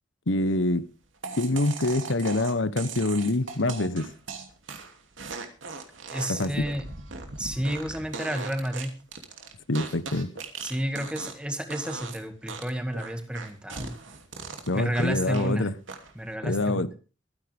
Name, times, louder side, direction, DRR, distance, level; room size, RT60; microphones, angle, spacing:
voice 1, 0.3-0.9 1.4-4.1 6.3-6.5 9.7-10.3 14.7-15.7 16.4-16.9, left 2 dB, 80° left, 1.1 m, -25 dB
sound 1, 1.2-11.5 11.7-12.2 12.5-15.5 15.9-16.3, right 4 dB, 80° right, 2.8 m, -39 dB
voice 2, 6.1-6.8 7.4-8.9 10.6-14.0 14.7-15.7 16.2-16.9, equal, 5° right, 2.1 m, -31 dB
22.5 x 10.0 x 3.6 m
head